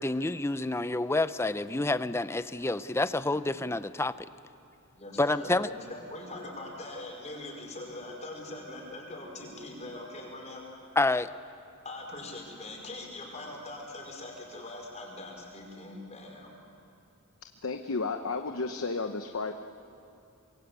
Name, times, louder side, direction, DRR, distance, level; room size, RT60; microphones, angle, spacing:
voice 1, 0.0-4.3 5.2-5.7 11.0-11.3, left 2 dB, 10° left, 13 dB, 0.5 m, -28 dB
voice 2, 4.9-10.6 11.8-16.5, left 2 dB, 30° left, -1 dB, 5.0 m, -42 dB
voice 3, 17.6-19.5, left 3 dB, 70° left, 6 dB, 1.0 m, -32 dB
25.5 x 22.5 x 8.2 m, 2.7 s
head